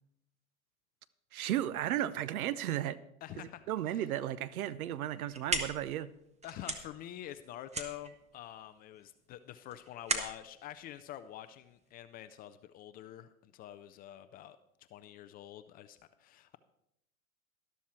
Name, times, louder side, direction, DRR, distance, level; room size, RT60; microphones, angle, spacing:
voice 1, 1.3-3.0 3.4-6.1, right 12 dB, 75° right, 16 dB, 0.8 m, -34 dB
voice 2, 3.2-4.0 6.4-14.6 14.9-16.6, left 12 dB, 25° left, 12 dB, 0.3 m, -47 dB
sound 1, 5.1-11.9, right 3 dB, 15° right, 1.4 m, -39 dB
12.5 x 12.0 x 4.4 m, 0.79 s
hypercardioid pair, 105°, 43 cm